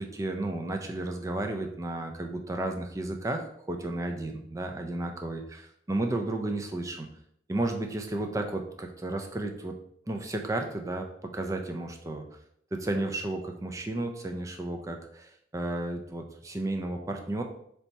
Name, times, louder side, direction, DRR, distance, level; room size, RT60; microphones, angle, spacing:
voice 1, 0.0-7.1 7.5-9.7 10.1-12.3 12.7-17.4, right 2 dB, 15° right, 4 dB, 0.3 m, -33 dB
3.3 x 2.8 x 4.1 m, 0.71 s
head